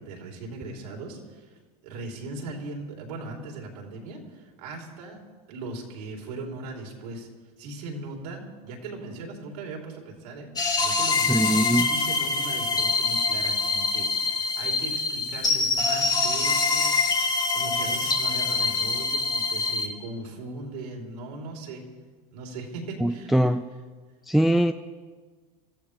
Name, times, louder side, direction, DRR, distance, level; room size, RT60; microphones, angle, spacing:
voice 1, 0.0-1.6 1.8-5.2 5.5-7.3 7.6-10.5 10.8-21.8 22.3-23.5, right 2 dB, 85° right, 0 dB, 3.5 m, -39 dB
sound 1, 10.6-19.9, left 4 dB, 20° left, 1.8 m, -25 dB
voice 2, 11.3-11.9 23.0-23.6 24.3-24.7, right 1 dB, ahead, 9 dB, 0.3 m, -22 dB
25.5 x 14.5 x 3.3 m, 1.4 s
supercardioid pair, 120°, 20 cm